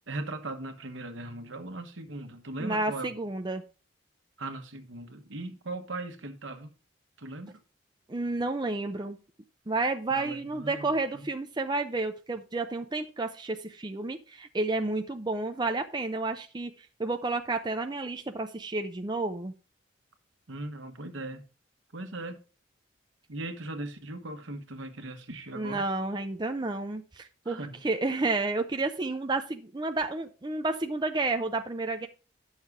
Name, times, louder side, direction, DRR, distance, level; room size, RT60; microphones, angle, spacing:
voice 1, 0.1-3.2 4.4-6.7 7.2-7.6 10.1-11.3 20.5-21.4 21.9-22.4 23.3-25.8 27.5-27.7, right 2 dB, 80° right, 1.2 m, -39 dB
voice 2, 2.6-3.6 8.1-9.2 9.7-19.5 25.5-32.1, right 2 dB, 20° right, 0.5 m, -31 dB
9.4 x 6.5 x 3.6 m
head